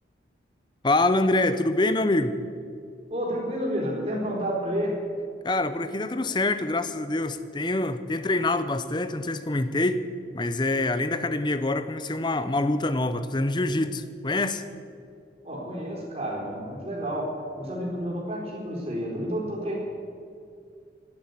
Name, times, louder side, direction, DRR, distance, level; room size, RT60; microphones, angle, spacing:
voice 1, 0.8-2.4 5.4-10.0 10.3-14.6, left 2 dB, 25° left, 12 dB, 0.6 m, -25 dB
voice 2, 3.1-5.0 15.4-19.8, equal, 35° right, -4 dB, 4.2 m, -30 dB
11.5 x 11.0 x 9.8 m, 2.3 s
head